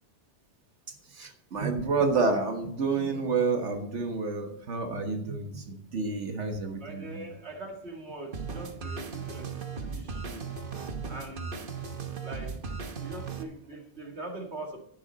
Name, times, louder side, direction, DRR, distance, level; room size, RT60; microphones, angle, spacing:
voice 1, 1.1-7.3, right 4 dB, 85° right, 4 dB, 1.8 m, -29 dB
voice 2, 6.8-10.5 11.1-11.5 12.2-12.6 13.0-14.8, right 2 dB, 70° right, 1 dB, 2.3 m, -42 dB
sound 1, 8.3-13.4, right 5 dB, 50° right, 1.2 m, -37 dB
11.0 x 9.6 x 4.1 m, 0.71 s
omnidirectional pair, 1.2 m